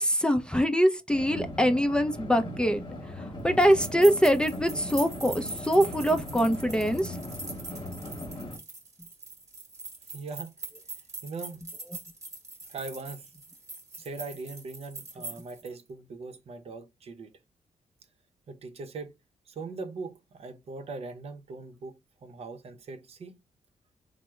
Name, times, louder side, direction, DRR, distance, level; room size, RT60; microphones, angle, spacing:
voice 1, 0.0-2.8 3.1-7.2, equal, 5° left, 0.4 m, -24 dB
sound 1, 1.1-8.6, left 1 dB, 40° left, 1.0 m, -39 dB
sound 2, 3.6-15.7, right 3 dB, 25° right, 1.0 m, -42 dB
voice 2, 10.1-10.5 11.2-11.6 12.7-13.3 14.0-17.3 18.5-19.1 19.5-23.4, right 3 dB, 55° right, 0.6 m, -40 dB
3.4 x 2.0 x 3.1 m
cardioid pair, 85°, 12 cm